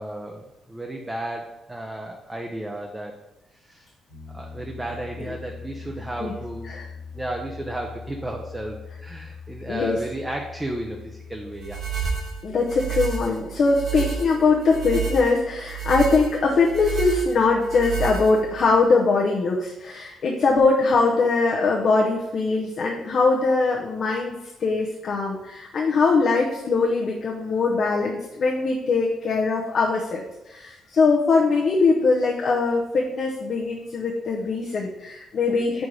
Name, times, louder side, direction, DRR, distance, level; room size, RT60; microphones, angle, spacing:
voice 1, 0.0-3.1 3.6-3.9 4.3-6.7 7.1-11.8, right 1 dB, 15° right, 1 dB, 0.6 m, -33 dB
Piano, 4.1-12.2, left 5 dB, 85° left, 1.3 m, -41 dB
voice 2, 9.7-10.0 12.4-24.3 24.6-35.9, left 4 dB, 55° left, -2 dB, 0.7 m, -22 dB
sound 1, 11.6-18.7, right 7 dB, 55° right, 1.9 m, -30 dB
4.6 x 4.2 x 4.8 m, 0.97 s
cardioid pair, 90°, 0 cm